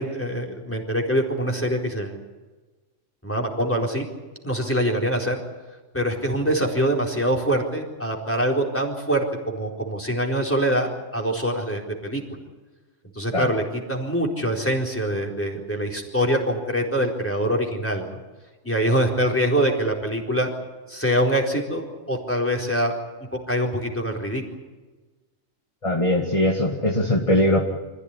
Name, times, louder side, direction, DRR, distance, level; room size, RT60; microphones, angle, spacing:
voice 1, 0.0-2.2 3.2-4.0 4.4-5.4 5.9-12.2 13.1-18.2 18.6-20.5 20.9-22.9 23.3-24.4, equal, 10° left, 0 dB, 4.3 m, -24 dB
voice 2, 25.8-27.6, left 1 dB, 25° left, 1 dB, 2.3 m, -21 dB
26.5 x 15.5 x 9.9 m, 1.3 s
omnidirectional pair, 1.3 m